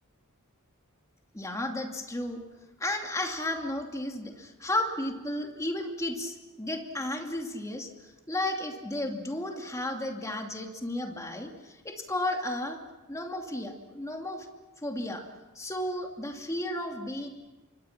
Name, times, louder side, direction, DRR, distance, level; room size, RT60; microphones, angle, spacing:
voice 1, 1.3-2.4 2.8-7.9 8.3-12.8 13.1-14.5 14.8-15.2 15.5-17.3, left 1 dB, 15° left, 3 dB, 2.6 m, -33 dB
28.0 x 25.0 x 6.0 m, 1.2 s
head